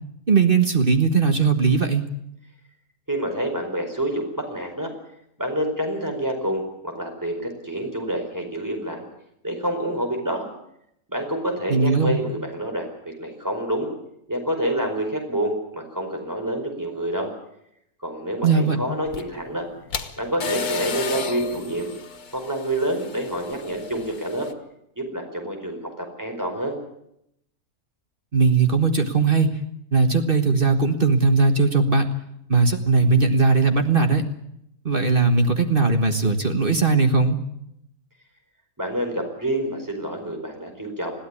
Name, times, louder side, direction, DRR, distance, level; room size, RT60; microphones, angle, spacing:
voice 1, 0.3-2.1 11.7-12.2 18.4-18.8 28.3-29.6 29.9-32.1 32.5-34.3 34.8-37.4, right 4 dB, 35° right, 7 dB, 1.6 m, -19 dB
voice 2, 3.1-4.9 5.4-9.1 9.4-10.5 11.1-13.9 14.3-17.3 18.0-19.7 20.2-21.9 22.3-24.5 25.0-26.7 38.8-41.1, right 1 dB, 10° right, 3 dB, 4.7 m, -27 dB
sound 1, 19.0-24.5, left 5 dB, 85° left, 1.9 m, -33 dB
21.5 x 15.5 x 9.7 m, 0.79 s
omnidirectional pair, 1.6 m